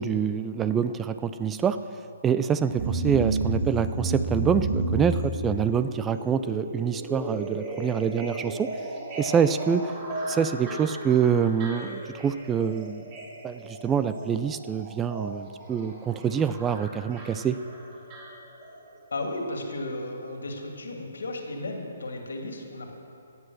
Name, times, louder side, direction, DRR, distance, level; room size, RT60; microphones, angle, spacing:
voice 1, 0.0-1.8 2.2-8.7 9.2-9.9 10.3-13.0 13.4-17.6, right 7 dB, 10° right, 12 dB, 0.3 m, -26 dB
sound 1, 2.8-18.9 19.2-19.3, right 2 dB, 30° right, 2.3 m, -33 dB
voice 2, 19.1-22.9, left 2 dB, 85° left, 2 dB, 2.5 m, -34 dB
15.5 x 8.5 x 6.4 m, 2.7 s
hypercardioid pair, 155°, 0 cm